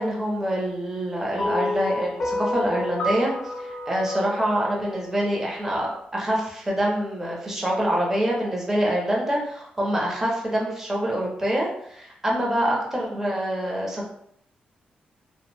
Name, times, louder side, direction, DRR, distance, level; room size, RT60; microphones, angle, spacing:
voice 1, 0.0-3.3 3.6-5.9 6.1-14.1, equal, 15° right, -3 dB, 0.6 m, -25 dB
sound 1, 1.4-5.7, left 1 dB, 50° left, 0.4 m, -30 dB
2.5 x 2.0 x 3.1 m, 0.71 s
wide cardioid pair, 150°, 3 cm